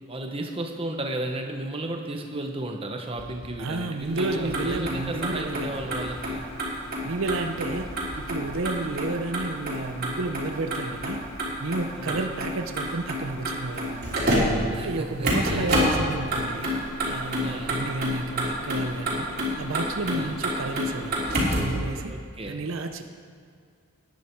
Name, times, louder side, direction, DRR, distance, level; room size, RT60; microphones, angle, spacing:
voice 1, 0.1-6.5 12.0-12.2 14.7-15.7 17.4-17.8 20.1-20.3 22.1-22.6, right 1 dB, 25° right, 3 dB, 0.9 m, -34 dB
sound 1, 3.2-4.0 4.5-5.4 5.8-6.6 7.2-9.8 10.3-10.6 11.0-11.5, left 1 dB, 65° left, 1.5 m, -46 dB
voice 2, 3.6-5.9 7.0-11.2 11.6-14.2 14.8-22.1 22.5-23.0, right 3 dB, 65° right, 6 dB, 0.7 m, -31 dB
Motor vehicle (road), 4.0-21.8, equal, 45° right, 3.2 m, -29 dB
16.5 x 10.5 x 4.6 m, 2.2 s
head